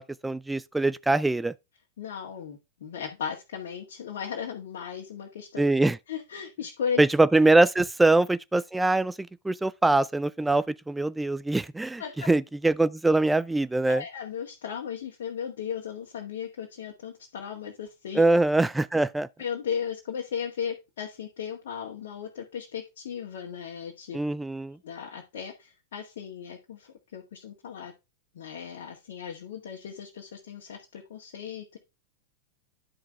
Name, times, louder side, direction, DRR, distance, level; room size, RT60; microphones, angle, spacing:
voice 1, 0.0-1.5 5.6-6.0 7.0-12.0 12.3-14.0 18.2-19.3 24.1-24.8, right 2 dB, 5° right, 0.4 m, -23 dB
voice 2, 2.0-5.6 6.1-7.0 12.0-12.3 13.8-18.2 19.4-24.2 24.8-27.9 28.3-31.8, left 7 dB, 60° left, 1.9 m, -36 dB
10.5 x 6.2 x 3.4 m
figure-of-eight pair, 90°, 0 cm